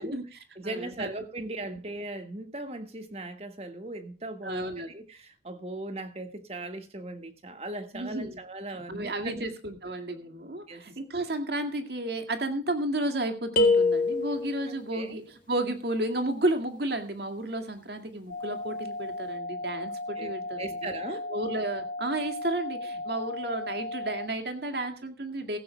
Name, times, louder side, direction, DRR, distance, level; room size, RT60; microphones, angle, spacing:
voice 1, 0.0-1.1 1.7-1.8 4.4-4.9 7.9-8.4 8.7-20.9 21.3-25.6, right 1 dB, 60° right, 2.1 m, -32 dB
voice 2, 0.6-9.5 10.7-10.9 14.9-15.2 20.2-21.3, right 2 dB, 35° right, 1.7 m, -38 dB
sound 1, 13.6-14.7, left 3 dB, 45° left, 1.8 m, -23 dB
sound 2, 18.3-24.3, left 2 dB, 70° left, 2.1 m, -36 dB
16.5 x 15.5 x 2.2 m
head